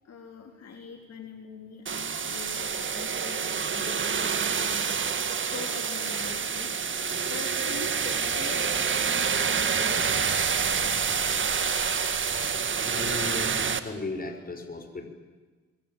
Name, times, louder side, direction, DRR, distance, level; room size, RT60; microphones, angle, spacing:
voice 1, 0.0-6.7 7.3-10.1, left 6 dB, 55° left, 3 dB, 3.9 m, -44 dB
sound 1, 1.9-13.8, right 6 dB, 40° right, 2.0 m, -27 dB
voice 2, 12.8-15.1, left 3 dB, 30° left, 6 dB, 5.8 m, -36 dB
26.5 x 23.0 x 9.3 m, 1.3 s
cardioid pair, 90°, 30 cm